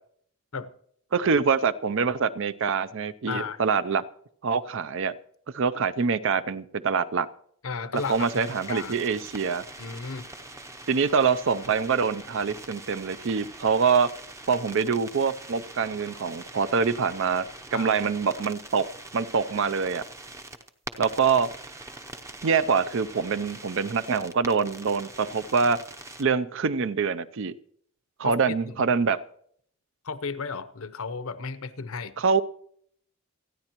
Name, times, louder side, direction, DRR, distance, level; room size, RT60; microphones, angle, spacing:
voice 1, 1.1-4.0 4.4-5.1 5.5-7.3 8.1-9.6 10.9-14.1 14.5-17.5 17.7-20.0 21.0-21.5 22.4-25.8 26.2-27.5 28.2-29.2 32.2-32.4, right 5 dB, 60° right, 0.5 m, -25 dB
voice 2, 3.3-3.6 7.6-9.0 9.8-10.3 17.7-17.9 28.2-28.8 30.0-32.1, left 5 dB, 65° left, 0.7 m, -34 dB
sound 1, 7.9-26.2, right 2 dB, 15° right, 0.6 m, -43 dB
28.0 x 9.8 x 3.0 m
head